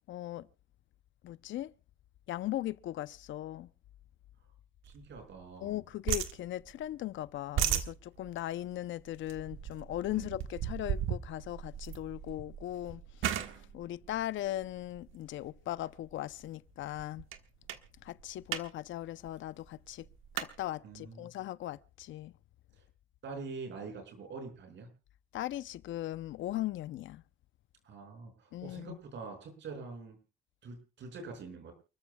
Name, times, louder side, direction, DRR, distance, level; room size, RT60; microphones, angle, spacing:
voice 1, 0.1-0.5 1.2-1.7 2.3-3.7 5.6-17.3 18.0-20.1 20.3-22.3 25.3-27.2 28.5-29.0, left 14 dB, 75° left, 0.6 m, -38 dB
voice 2, 4.8-5.8 10.1-10.3 20.8-21.3 22.7-22.8 23.2-24.9 27.8-30.2 30.6-31.7, right 4 dB, 70° right, 5.8 m, -45 dB
sound 1, 4.8-5.8 6.1-7.0 7.3-15.2 15.8-16.1 16.5-16.6 16.8-17.4 17.7-17.9 18.2-18.7 18.9-19.0 19.3-20.5, right 10 dB, 85° right, 1.4 m, -36 dB
29.0 x 13.5 x 2.3 m
cardioid pair, 90°, 20 cm